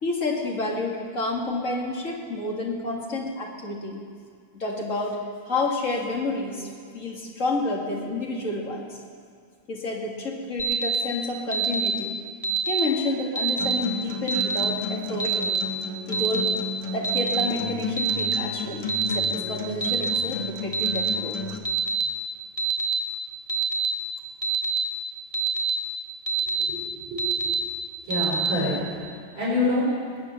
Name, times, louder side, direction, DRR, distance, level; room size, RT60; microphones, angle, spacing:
voice 1, 0.0-4.0 4.5-5.2 5.5-9.0 9.7-12.2 12.7-15.4 16.1-16.5 16.9-21.4, left 2 dB, 40° left, -1 dB, 2.3 m, -29 dB
Alarm, 10.6-11.0 11.5-11.9 12.4-12.8 13.4-13.7 14.3-14.6 15.2-15.6 16.1-16.5 17.0-17.4 18.0-18.3 18.9-19.2 19.8-20.2 20.7-21.1 21.7-22.0 22.6-22.9 23.5-23.9 24.4-24.8 25.3-25.7 26.3-26.6 27.2-27.5 28.1-28.5, right 5 dB, 20° left, 1.6 m, -25 dB
Acoustic guitar, 13.6-21.6, left 3 dB, 60° left, 1.6 m, -33 dB
voice 2, 26.6-27.5 28.0-28.7 29.1-29.8, left 2 dB, 75° right, -7 dB, 5.3 m, -27 dB
20.5 x 8.5 x 6.6 m, 2.2 s
omnidirectional pair, 2.2 m